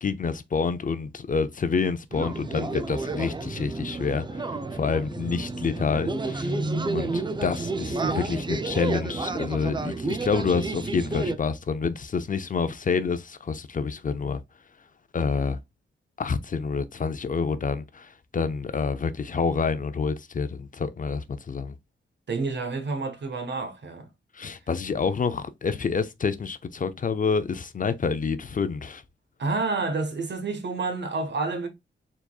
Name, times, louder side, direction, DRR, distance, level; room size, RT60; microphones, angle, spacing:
voice 1, 0.0-6.6 6.9-14.4 15.1-15.6 16.2-21.7 24.3-29.0, left 5 dB, 40° left, 0.5 m, -28 dB
sound 1, 2.1-11.4, right 3 dB, 25° right, 0.5 m, -30 dB
voice 2, 22.3-24.1 29.4-31.7, right 3 dB, 60° right, 1.3 m, -29 dB
4.6 x 4.1 x 2.3 m
wide cardioid pair, 145°, 20 cm